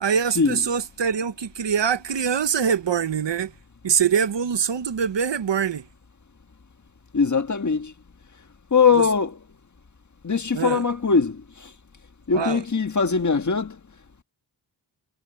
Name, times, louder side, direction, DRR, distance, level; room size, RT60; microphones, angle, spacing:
voice 1, 0.0-3.5 3.8-5.8 9.0-9.1 10.5-10.8 12.3-12.6, right 7 dB, 80° right, 1.0 m, -24 dB
voice 2, 7.1-7.9 8.7-9.4 10.2-11.7 12.3-13.8, left 5 dB, 40° left, 1.5 m, -21 dB
wide cardioid pair, 95°, 43 cm